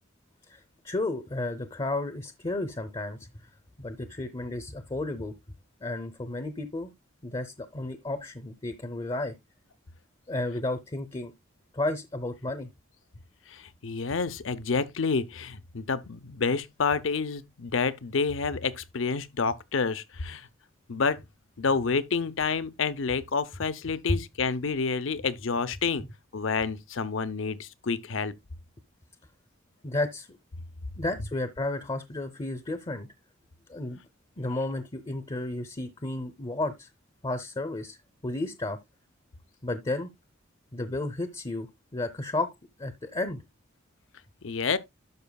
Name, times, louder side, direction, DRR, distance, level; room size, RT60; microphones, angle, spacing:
voice 1, 0.8-3.2 3.8-5.3 5.8-6.9 7.2-9.3 10.3-11.3 11.7-12.7 29.8-30.3 31.0-33.1 33.7-34.0 34.4-36.9 37.2-38.0 38.2-38.8 39.6-40.1 40.7-41.7 41.9-42.5 42.8-43.4, left 2 dB, 25° left, 0.7 m, -32 dB
voice 2, 13.5-20.5 20.9-21.2 21.6-26.0 26.3-28.3 44.4-44.8, left 5 dB, 65° left, 0.7 m, -29 dB
12.0 x 5.6 x 2.3 m
head